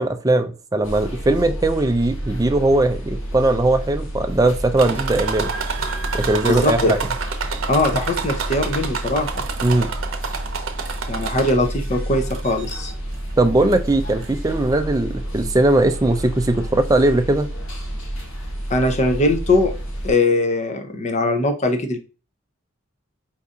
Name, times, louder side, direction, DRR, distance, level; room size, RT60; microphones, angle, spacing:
voice 1, 0.0-5.5 6.1-7.0 9.6-9.9 13.4-17.5, right 2 dB, 15° right, 0.4 m, -19 dB
sound 1, 0.8-20.1, right 1 dB, 80° left, 1.6 m, -30 dB
sound 2, 4.8-11.8 12.3-12.9 13.7-13.8 14.2-14.3, right 5 dB, 75° right, 0.7 m, -29 dB
voice 2, 6.5-6.9 7.7-9.5 11.1-12.9 18.7-19.7 20.0-22.0, left 2 dB, 35° left, 0.7 m, -20 dB
4.6 x 2.7 x 3.7 m
head